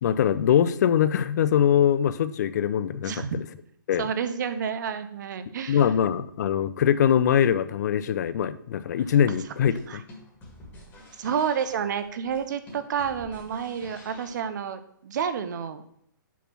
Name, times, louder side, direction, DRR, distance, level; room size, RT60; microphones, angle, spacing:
voice 1, 0.0-3.2 3.9-4.1 5.7-10.0, left 9 dB, 55° left, 14 dB, 0.4 m, -22 dB
voice 2, 3.0-3.4 4.0-5.8 9.9-10.0 11.2-15.8, right 7 dB, 55° right, 11 dB, 0.7 m, -30 dB
sound 1, 9.0-14.4, left 1 dB, 20° left, 1.8 m, -49 dB
5.8 x 4.3 x 5.9 m, 0.70 s
hypercardioid pair, 150°, 12 cm